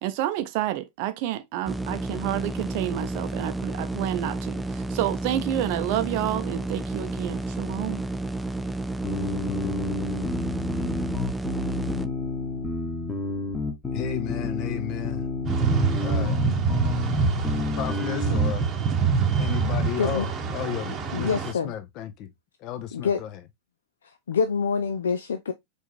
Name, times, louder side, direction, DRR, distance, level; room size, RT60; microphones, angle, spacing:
voice 1, 0.0-8.0, right 13 dB, 45° right, 0.6 m, -29 dB
sound 1, 1.6-12.1, right 2 dB, 5° right, 0.4 m, -31 dB
sound 2, 9.0-18.5, left 3 dB, 20° left, 1.4 m, -30 dB
voice 2, 13.9-15.3 16.0-16.6 17.7-18.7 19.4-22.3 22.6-23.4, left 10 dB, 40° left, 0.8 m, -33 dB
sound 3, 15.5-21.5, right 5 dB, 25° right, 0.9 m, -25 dB
voice 3, 21.1-21.7 22.9-23.2 24.3-25.5, left 6 dB, 65° left, 0.4 m, -26 dB
4.5 x 3.5 x 3.0 m
figure-of-eight pair, 90°, 0 cm